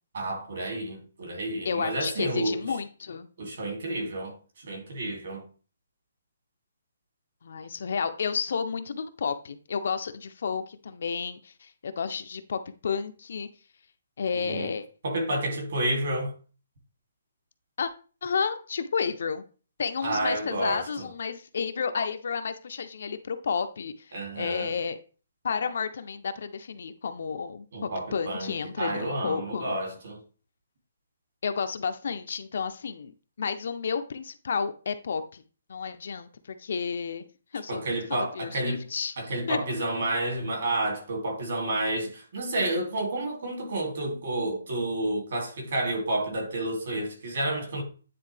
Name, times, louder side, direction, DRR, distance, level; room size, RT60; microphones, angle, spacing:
voice 1, 0.1-2.7 3.4-5.4 14.3-14.7 15.0-16.3 20.0-21.1 24.1-24.7 27.7-30.2 37.7-38.8 39.2-47.8, right 1 dB, 45° right, 2.4 m, -30 dB
voice 2, 1.6-3.3 7.4-13.5 14.2-14.9 17.8-17.9 18.2-19.4 19.8-25.0 25.4-29.7 31.4-35.4 35.7-37.2 37.5-39.1 39.5-39.6, left 6 dB, 50° left, 0.5 m, -31 dB
9.5 x 3.7 x 3.2 m
hypercardioid pair, 180°, 0 cm